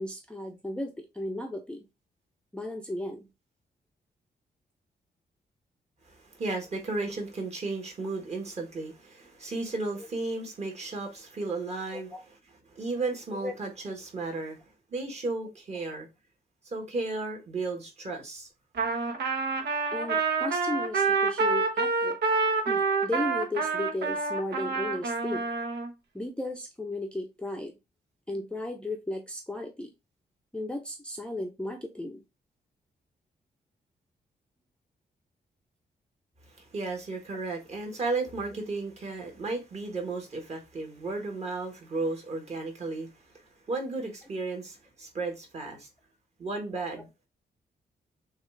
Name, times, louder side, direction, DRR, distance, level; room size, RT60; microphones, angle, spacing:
voice 1, 0.0-1.8 2.5-3.2 11.9-12.2 13.3-13.5 13.9-14.0 19.9-22.2 22.7-25.4 26.1-27.7 28.3-29.9 30.5-32.2 37.3-37.4, left 1 dB, 5° left, 0.5 m, -35 dB
voice 2, 6.1-14.6 14.9-16.1 16.6-18.5 36.5-43.1 43.3-45.9 46.4-47.1, right 3 dB, 40° right, 1.4 m, -34 dB
Trumpet, 18.8-25.9, right 4 dB, 90° right, 1.0 m, -27 dB
6.3 x 2.4 x 3.2 m
wide cardioid pair, 170°, 17 cm